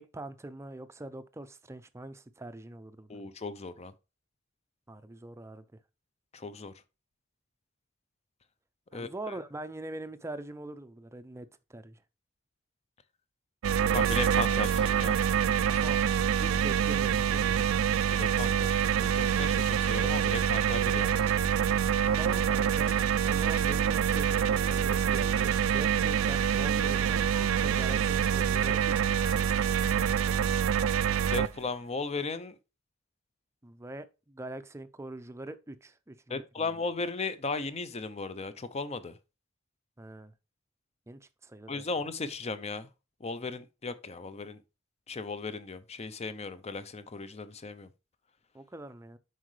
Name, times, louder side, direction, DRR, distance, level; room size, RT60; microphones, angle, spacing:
voice 1, 0.0-3.2 4.9-5.6 8.9-12.0 15.7-16.0 16.4-17.7 22.1-29.2 33.6-36.7 40.0-40.3 41.1-41.8 48.5-49.2, right 2 dB, 15° right, 0.5 m, -43 dB
voice 2, 3.1-3.9 6.3-6.7 8.9-9.4 13.9-15.2 18.1-21.2 31.3-32.6 36.3-39.2 41.7-42.9 43.2-44.6 45.1-47.9, left 3 dB, 30° left, 0.6 m, -36 dB
sound 1, 13.6-31.5, right 8 dB, 80° right, 0.4 m, -26 dB
sound 2, 13.9-30.3, left 3 dB, 50° left, 1.1 m, -51 dB
7.6 x 5.4 x 3.2 m
head